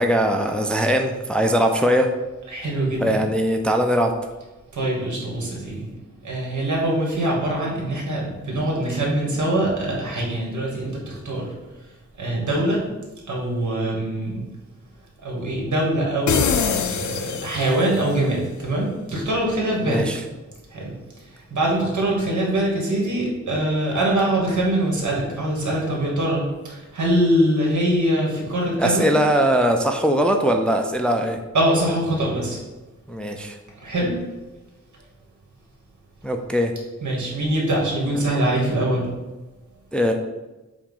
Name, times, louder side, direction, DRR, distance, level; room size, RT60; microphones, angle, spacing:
voice 1, 0.0-2.1 3.0-4.1 19.8-20.2 28.8-31.4 33.1-33.6 36.2-36.7 38.1-38.2 39.9-40.1, equal, 5° left, 4 dB, 0.4 m, -20 dB
voice 2, 2.5-3.1 4.7-5.9 6.2-11.5 12.2-12.9 13.3-14.4 15.2-16.5 16.9-20.0 20.7-20.9 21.5-26.4 26.7-29.1 31.5-32.6 33.8-34.1 37.0-39.0, right 1 dB, 80° right, -2 dB, 1.9 m, -23 dB
sound 1, 16.3-18.1, left 7 dB, 75° left, 0.5 m, -23 dB
7.3 x 2.5 x 5.4 m, 1.1 s
wide cardioid pair, 155°, 29 cm